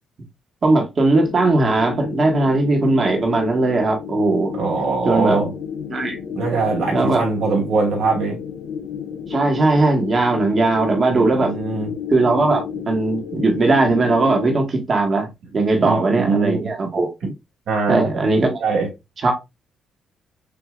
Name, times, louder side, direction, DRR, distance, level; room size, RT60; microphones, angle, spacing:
voice 1, 0.6-4.5 5.0-5.4 5.9-6.2 6.9-7.2 9.3-11.5 12.1-15.3 15.5-17.1 17.9-18.6 19.2-19.3, right 2 dB, 40° right, 1.5 m, -18 dB
sound 1, 1.1-14.6, left 7 dB, 85° left, 0.6 m, -31 dB
voice 2, 4.6-5.5 6.3-8.4 11.1-11.9 15.8-16.7 17.7-18.3 18.6-18.9, right 4 dB, 75° right, 2.5 m, -22 dB
6.6 x 2.7 x 2.4 m
cardioid pair, 90°, 0 cm